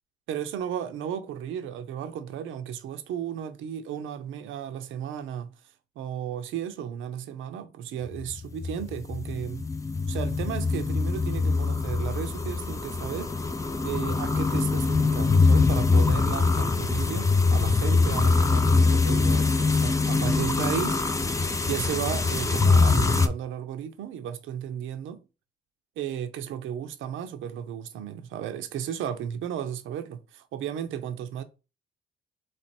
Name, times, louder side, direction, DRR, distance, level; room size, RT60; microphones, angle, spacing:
voice 1, 0.3-5.5 6.0-9.7 10.1-13.3 13.8-21.0 21.7-25.2 26.0-31.4, right 9 dB, 85° right, 0.6 m, -34 dB
sound 1, 8.1-23.3, left 4 dB, 15° left, 0.5 m, -23 dB
3.3 x 3.3 x 4.3 m
cardioid pair, 90°, 20 cm